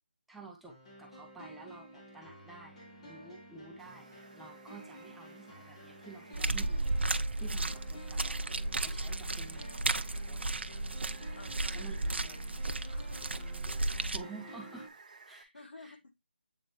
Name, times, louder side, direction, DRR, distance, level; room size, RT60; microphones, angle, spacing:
voice 1, 0.3-7.0 7.4-8.4 8.8-10.4 11.7-12.0 14.1-14.9 15.3-16.0, right 4 dB, ahead, 0.4 m, -51 dB
sound 1, 0.7-14.9, equal, 35° left, 2.0 m, -52 dB
Water, 3.8-15.4, right 4 dB, 35° right, 0.8 m, -58 dB
sound 2, 6.3-14.2, right 2 dB, 70° right, 0.7 m, -34 dB
voice 2, 11.3-12.4 12.6-13.1 15.5-16.1, left 3 dB, 70° left, 1.6 m, -52 dB
7.9 x 3.9 x 3.0 m
figure-of-eight pair, 165°, 6 cm